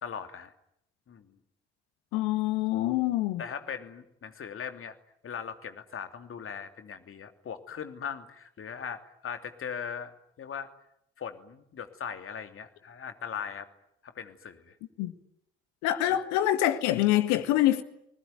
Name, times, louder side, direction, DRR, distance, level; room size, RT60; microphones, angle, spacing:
voice 1, 0.0-0.5 1.1-1.3 3.4-5.0 5.2-10.7 11.2-13.7 14.0-14.8 16.1-16.2, left 7 dB, 45° left, 3.0 m, -39 dB
voice 2, 2.1-3.4 15.0-15.1 15.8-17.8, left 14 dB, 65° left, 1.9 m, -25 dB
30.0 x 20.5 x 9.5 m
figure-of-eight pair, 50°, 31 cm